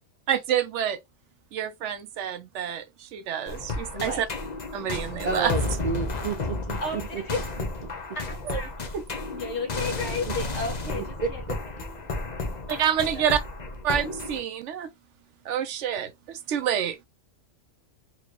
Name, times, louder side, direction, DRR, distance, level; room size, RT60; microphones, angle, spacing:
voice 1, 0.3-1.0 1.5-4.3 4.7-5.5 8.5-8.6 8.9-9.0 12.7-13.4 13.8-14.9 15.4-17.0, right 9 dB, 75° right, 0.9 m, -28 dB
sound 1, 3.5-14.4, left 3 dB, 40° left, 0.8 m, -32 dB
voice 2, 5.2-7.2 7.8-7.9 10.3-10.4 10.9-11.6, right 4 dB, 55° right, 0.5 m, -31 dB
voice 3, 6.8-7.4 8.1-9.0 9.3-11.4 11.8-12.1, left 2 dB, 65° left, 1.8 m, -33 dB
4.2 x 2.9 x 3.0 m
omnidirectional pair, 1.3 m